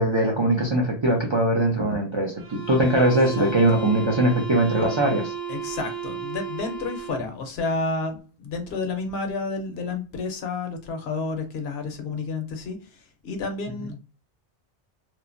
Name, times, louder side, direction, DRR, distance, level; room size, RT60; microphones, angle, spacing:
voice 1, 0.0-5.3, right 1 dB, 45° right, 0.3 m, -21 dB
sound 1, 2.4-7.3, right 7 dB, 65° right, 1.1 m, -33 dB
voice 2, 5.5-14.0, left 3 dB, 65° left, 0.8 m, -30 dB
3.0 x 2.1 x 2.4 m
omnidirectional pair, 1.2 m